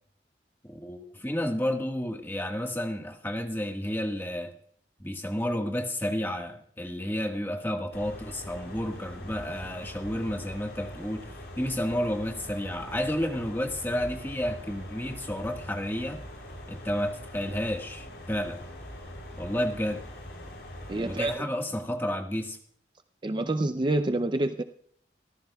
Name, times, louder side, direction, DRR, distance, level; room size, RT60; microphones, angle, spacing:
voice 1, 0.6-4.5 5.0-11.3 11.5-16.2 16.7-18.6 19.4-20.0 21.0-22.6, equal, 10° left, 3 dB, 1.5 m, -31 dB
sound 1, 7.9-21.4, left 1 dB, 70° left, 6.6 m, -43 dB
voice 2, 20.9-21.5 23.2-24.6, right 2 dB, 25° right, 9 dB, 0.5 m, -27 dB
24.5 x 14.5 x 2.3 m, 0.62 s
head